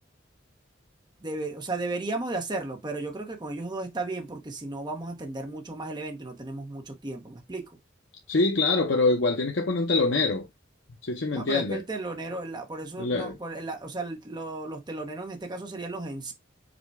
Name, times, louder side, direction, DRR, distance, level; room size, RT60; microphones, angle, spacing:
voice 1, 1.2-7.8 11.3-16.3, right 2 dB, 25° right, 0.8 m, -34 dB
voice 2, 8.3-10.5 11.0-11.8 13.0-13.4, left 3 dB, 70° left, 0.7 m, -24 dB
5.1 x 2.2 x 4.5 m
head